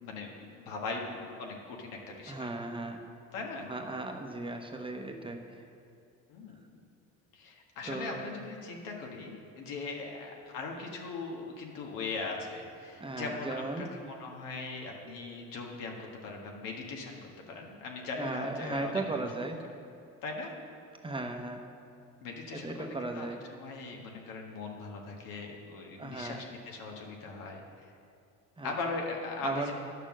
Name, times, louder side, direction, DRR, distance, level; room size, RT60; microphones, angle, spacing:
voice 1, 0.0-2.5 3.3-3.7 6.3-6.5 7.3-17.2 17.5-19.0 20.2-20.5 22.2-27.9 28.6-29.7, left 3 dB, 85° left, 0 dB, 1.6 m, -40 dB
voice 2, 2.3-3.0 3.7-5.6 7.8-8.2 13.0-13.9 18.1-19.6 21.0-21.7 22.5-23.4 26.0-26.4 28.6-28.7 29.4-29.7, right 2 dB, 15° right, 4 dB, 0.9 m, -36 dB
10.5 x 6.6 x 6.2 m, 2.5 s
cardioid pair, 105°, 32 cm